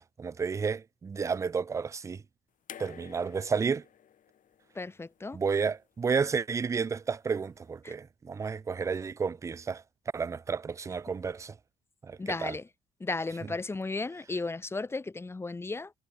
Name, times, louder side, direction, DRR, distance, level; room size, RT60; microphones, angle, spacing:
voice 1, 0.0-2.2 2.8-3.8 5.3-9.8 10.1-11.6 12.0-12.6, right 5 dB, 20° right, 0.3 m, -31 dB
sound 1, 2.7-5.8 7.0-7.1, left 9 dB, 50° left, 6.6 m, -51 dB
voice 2, 4.7-5.4 7.8-7.9 12.2-12.7 13.0-15.9, left 3 dB, 15° left, 0.9 m, -34 dB
cardioid pair, 110°, 17 cm